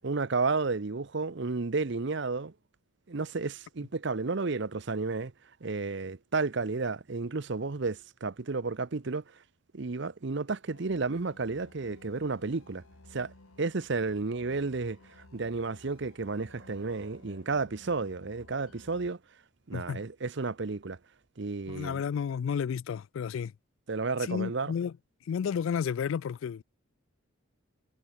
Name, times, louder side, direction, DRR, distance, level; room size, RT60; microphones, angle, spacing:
voice 1, 0.0-2.5 3.1-5.3 5.6-9.2 9.7-12.8 13.1-13.3 13.6-15.0 15.3-19.2 19.7-21.0 21.4-22.0 23.9-24.7, right 3 dB, 55° right, 0.7 m, -32 dB
sound 1, 10.7-19.1, left 2 dB, 85° left, 1.7 m, -56 dB
voice 2, 21.7-23.5 24.2-24.9 25.3-26.6, left 7 dB, 65° left, 0.3 m, -32 dB
head